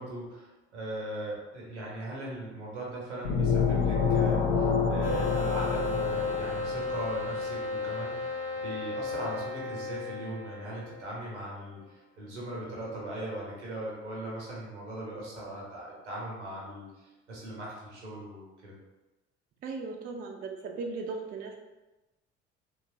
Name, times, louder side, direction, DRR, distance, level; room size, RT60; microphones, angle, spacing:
voice 1, 0.0-8.4 8.6-16.9 17.3-18.8, right 1 dB, 85° right, -4 dB, 0.8 m, -39 dB
sound 1, 3.2-7.0, left 5 dB, 60° left, 0.6 m, -27 dB
sound 2, 5.0-11.4, left 4 dB, 40° left, 0.9 m, -34 dB
voice 2, 19.6-21.6, right 4 dB, 25° right, 2 dB, 0.4 m, -37 dB
2.9 x 2.3 x 2.7 m, 1.1 s
figure-of-eight pair, 55°, 34 cm